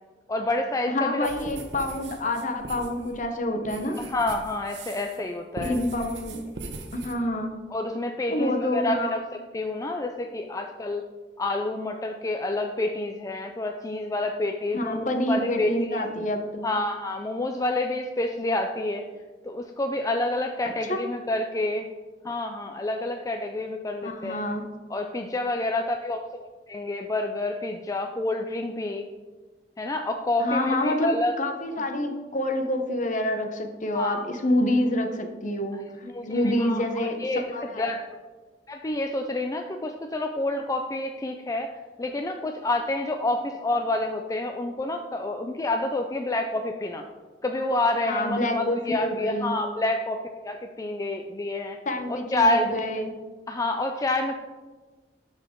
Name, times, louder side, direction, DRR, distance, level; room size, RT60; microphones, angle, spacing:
voice 1, 0.3-1.3 4.0-5.8 7.7-11.0 11.4-16.0 16.6-19.0 19.4-21.9 22.2-24.4 24.9-29.1 29.8-31.3 33.9-34.2 35.7-38.0 38.7-41.7 42.0-47.1 47.4-51.8 52.1-52.7 53.5-54.3, left 2 dB, 20° left, 4 dB, 0.4 m, -28 dB
voice 2, 0.9-4.0 5.6-6.4 6.9-7.5 8.3-9.2 14.7-16.8 20.9-21.0 24.0-24.7 30.4-37.2 37.5-37.9 48.1-49.5 51.9-53.1, left 1 dB, 45° left, 5 dB, 1.0 m, -27 dB
sound 1, 1.2-5.2 5.5-7.1, right 2 dB, 80° right, 1.1 m, -40 dB
12.5 x 4.8 x 3.8 m, 1.3 s
head